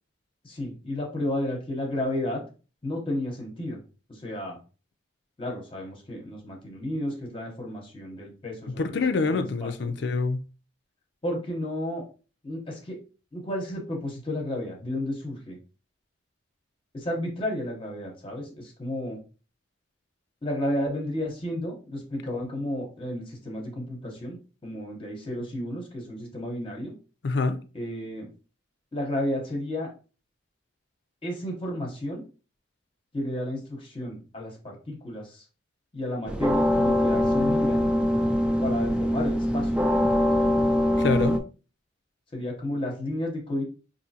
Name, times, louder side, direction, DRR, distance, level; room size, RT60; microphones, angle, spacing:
voice 1, 0.4-2.4 2.8-3.8 4.1-4.6 5.4-9.9 11.2-12.0 12.4-13.0 13.3-15.6 16.9-19.2 20.4-26.9 27.7-28.3 28.9-29.9 31.2-32.2 33.1-35.4 35.9-37.8 38.6-39.8 40.4-40.5 42.3-43.6, left 1 dB, 25° left, 0.9 m, -32 dB
voice 2, 8.8-10.4 27.2-27.6 41.0-41.4, left 3 dB, 60° left, 0.4 m, -26 dB
sound 1, 36.3-41.4, left 1 dB, 5° right, 0.3 m, -23 dB
5.0 x 2.7 x 2.7 m
head